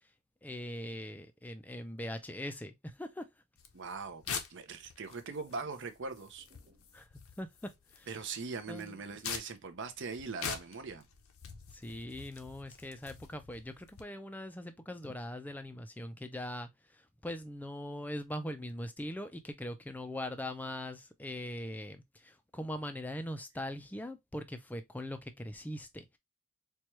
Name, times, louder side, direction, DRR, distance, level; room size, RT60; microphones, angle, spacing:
voice 1, 0.4-3.3 6.9-7.1 7.4-8.2 8.7-9.0 11.7-26.2, left 1 dB, 5° left, 0.4 m, -41 dB
sound 1, 3.6-14.0, left 7 dB, 70° left, 0.7 m, -45 dB
voice 2, 3.7-6.5 8.1-11.1, right 4 dB, 55° right, 0.6 m, -41 dB
sound 2, 6.3-7.1 7.5-7.6 8.0-8.1 8.6-10.0 10.3-11.0, equal, 20° right, 1.2 m, -69 dB
4.5 x 2.3 x 3.0 m
head